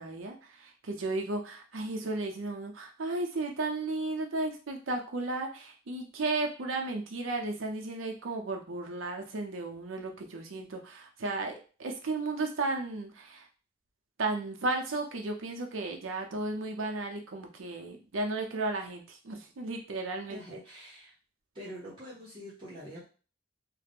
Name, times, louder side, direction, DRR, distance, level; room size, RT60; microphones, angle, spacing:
voice 1, 0.0-13.5 14.2-20.4, right 2 dB, 80° right, 3 dB, 0.6 m, -34 dB
voice 2, 20.3-21.1 21.5-23.1, equal, 25° right, -8 dB, 0.7 m, -45 dB
2.4 x 2.1 x 3.4 m, 0.37 s
head